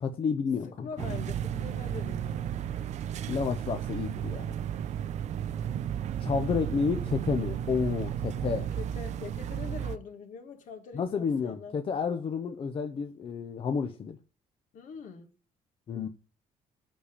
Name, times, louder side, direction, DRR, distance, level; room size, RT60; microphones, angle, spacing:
voice 1, 0.0-1.2 3.3-4.5 6.2-8.7 10.9-14.2 15.9-16.1, left 6 dB, 45° left, 0.8 m, -30 dB
voice 2, 0.6-2.5 8.8-11.7 14.7-15.3, left 6 dB, 70° left, 1.9 m, -43 dB
sound 1, 1.0-10.0, right 9 dB, 60° right, 0.6 m, -33 dB
7.8 x 5.1 x 7.0 m
cardioid pair, 120°, 13 cm